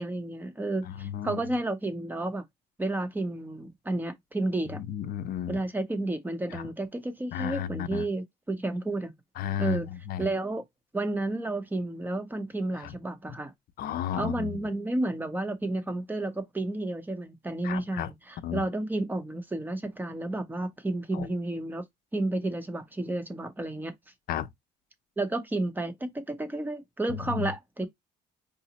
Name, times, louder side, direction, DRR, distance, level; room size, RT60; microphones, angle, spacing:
voice 1, 0.0-2.4 2.8-4.8 5.5-9.1 9.6-9.9 10.2-10.6 10.9-13.5 14.1-21.8 22.1-23.9 25.2-27.9, right 2 dB, 10° right, 0.7 m, -31 dB
voice 2, 1.0-1.4 4.9-5.6 6.5-6.6 7.3-8.0 9.4-10.2 12.8-12.9 13.8-14.6 17.6-18.1 18.4-18.6 21.1-21.3 24.3-24.5 27.3-27.5, left 10 dB, 60° left, 0.5 m, -33 dB
4.9 x 2.0 x 2.8 m
cardioid pair, 110°, 17 cm